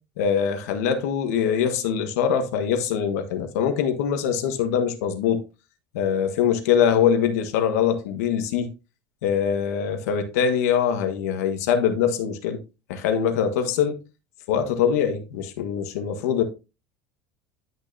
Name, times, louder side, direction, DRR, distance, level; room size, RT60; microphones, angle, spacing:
voice 1, 0.2-5.4 5.9-8.7 9.2-12.6 12.9-14.0 14.5-16.4, left 8 dB, 85° left, 1.5 m, -23 dB
11.0 x 6.0 x 2.7 m
supercardioid pair, 115°, 8 cm